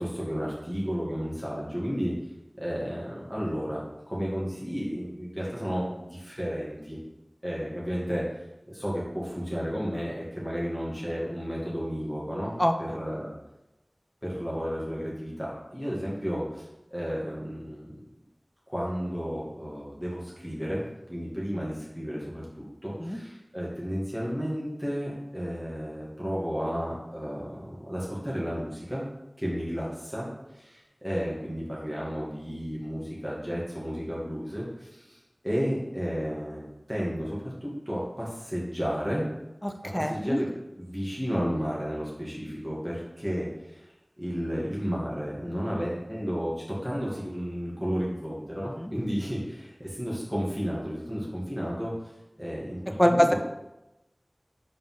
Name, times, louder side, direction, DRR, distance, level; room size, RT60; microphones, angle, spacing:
voice 1, 0.0-2.1 2.6-3.8 4.1-7.0 7.4-8.2 8.6-12.5 12.8-13.3 14.2-16.7 16.9-18.1 18.7-29.1 29.4-30.3 30.5-39.2 39.9-40.5 40.8-43.8 44.2-51.9 52.4-53.4, equal, 5° right, -6 dB, 2.3 m, -32 dB
voice 2, 12.6-13.0 23.0-23.2 39.6-40.4 48.8-48.9 53.0-53.3, equal, 15° left, 6 dB, 0.7 m, -24 dB
5.2 x 4.3 x 5.7 m, 0.93 s
wide cardioid pair, 45°, 0 cm